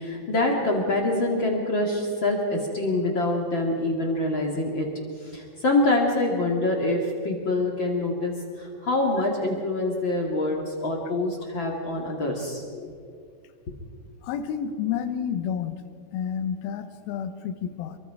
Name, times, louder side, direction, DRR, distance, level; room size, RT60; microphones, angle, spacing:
voice 1, 0.0-4.9 5.2-12.6, left 2 dB, 50° left, -1 dB, 1.3 m, -25 dB
voice 2, 14.2-15.8 16.1-18.0, left 8 dB, 80° left, 8 dB, 2.2 m, -30 dB
27.0 x 23.5 x 4.9 m, 2.2 s
omnidirectional pair, 5.8 m